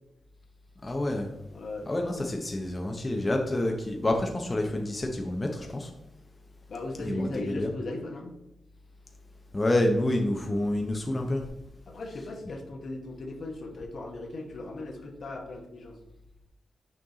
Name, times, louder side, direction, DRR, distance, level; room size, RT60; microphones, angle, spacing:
voice 1, 0.8-1.3 1.9-5.9 7.0-7.7 9.5-11.4, left 1 dB, 25° left, 2 dB, 0.8 m, -28 dB
voice 2, 1.5-1.9 6.7-8.3 11.9-16.0, left 2 dB, 60° left, 3 dB, 1.1 m, -38 dB
6.2 x 4.5 x 3.9 m, 0.87 s
cardioid pair, 100°, 0 cm